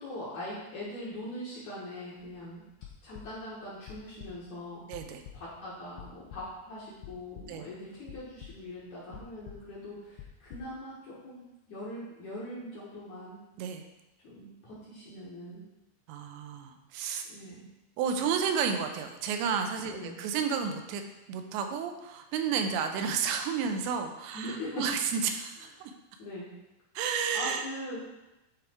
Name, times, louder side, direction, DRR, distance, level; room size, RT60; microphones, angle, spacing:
voice 1, 0.0-2.7 3.0-4.9 5.3-13.4 14.2-15.6 17.2-17.6 19.9-20.2 24.3-24.9 26.2-26.5 27.3-28.3, left 1 dB, 60° left, -7 dB, 2.1 m, -41 dB
sound 1, 2.2-2.4 2.7-3.6 3.9-4.5 4.9-5.6 6.0-6.7 7.0-7.7 8.0-8.8 9.1-10.7, left 10 dB, 85° left, 2.8 m, -48 dB
voice 2, 4.9-5.2 7.5-7.7 13.6-13.8 16.1-17.2 18.0-21.0 21.3-25.9 27.0-27.7, right 6 dB, 85° right, 5 dB, 2.9 m, -31 dB
10.5 x 3.7 x 4.4 m, 0.97 s
omnidirectional pair, 5.0 m